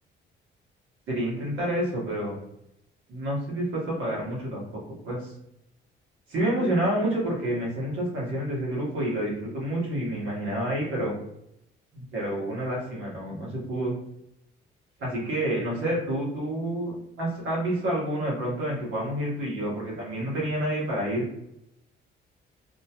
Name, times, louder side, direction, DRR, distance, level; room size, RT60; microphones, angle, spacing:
voice 1, 1.1-2.4 3.1-4.7 5.0-5.3 6.3-11.1 11.9-13.9 15.0-21.3, right 1 dB, 80° right, -4 dB, 1.4 m, -28 dB
2.8 x 2.3 x 2.9 m, 0.78 s
cardioid pair, 90°, 20 cm